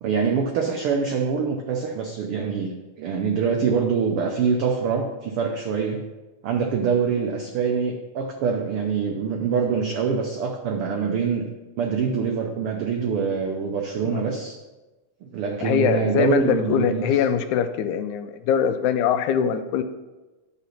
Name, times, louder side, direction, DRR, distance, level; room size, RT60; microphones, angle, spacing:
voice 1, 0.0-6.0 6.4-11.5 11.8-14.6 15.2-17.1, right 6 dB, 90° right, 3 dB, 1.2 m, -24 dB
voice 2, 15.6-19.8, left 8 dB, 85° left, 10 dB, 2.0 m, -22 dB
10.5 x 4.1 x 5.8 m, 1.2 s
omnidirectional pair, 3.4 m